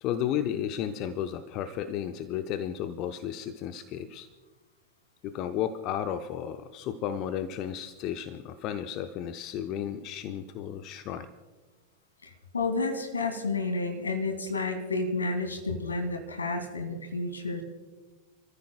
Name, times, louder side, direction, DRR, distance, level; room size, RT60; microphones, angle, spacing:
voice 1, 0.0-4.3 5.2-11.3, left 10 dB, 40° left, 9 dB, 0.7 m, -33 dB
voice 2, 12.2-17.6, left 3 dB, 75° left, 6 dB, 2.0 m, -31 dB
29.5 x 14.0 x 2.2 m, 1.3 s
figure-of-eight pair, 90°, 0 cm